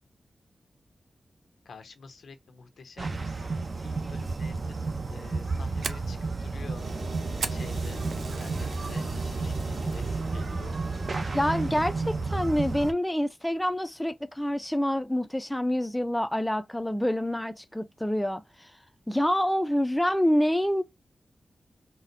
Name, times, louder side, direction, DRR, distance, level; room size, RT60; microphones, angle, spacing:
voice 1, 1.6-6.8 7.5-10.8, left 4 dB, 85° left, 0.7 m, -48 dB
sound 1, 3.0-12.9, right 3 dB, 45° right, 0.6 m, -32 dB
Fire, 5.2-8.8 9.2-9.6 10.0-10.1 10.6-11.0, right 5 dB, 90° right, 0.4 m, -38 dB
sound 2, 6.7-12.0, right 2 dB, 65° right, 1.7 m, -41 dB
voice 2, 11.3-18.7 19.1-20.8, equal, 5° left, 0.4 m, -27 dB
4.1 x 2.1 x 2.5 m
wide cardioid pair, 115°, 0 cm